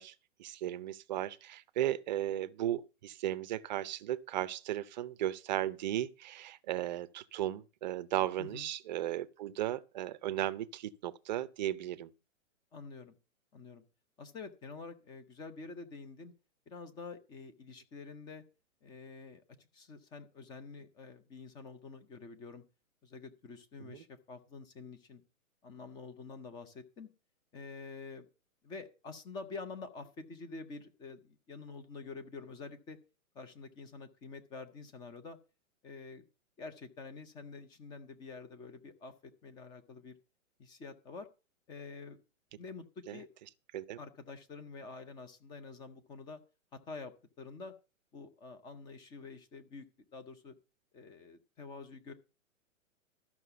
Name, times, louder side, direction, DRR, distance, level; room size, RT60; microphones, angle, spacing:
voice 1, 0.0-12.1 23.8-24.0 43.1-43.2 43.7-44.0, right 13 dB, 35° right, 0.6 m, -36 dB
voice 2, 12.7-13.2 13.5-13.8 14.2-16.3 16.7-18.4 18.8-22.6 23.0-25.2 25.6-27.1 27.5-28.3 28.6-33.0 33.3-35.4 35.8-36.2 36.6-40.1 40.6-41.3 41.7-42.2 42.6-43.3 44.0-46.4 46.7-47.7 48.1-49.9 50.1-50.5 50.9-52.1, left 4 dB, 10° left, 0.5 m, -47 dB
13.0 x 5.9 x 6.8 m
hypercardioid pair, 145°, 42 cm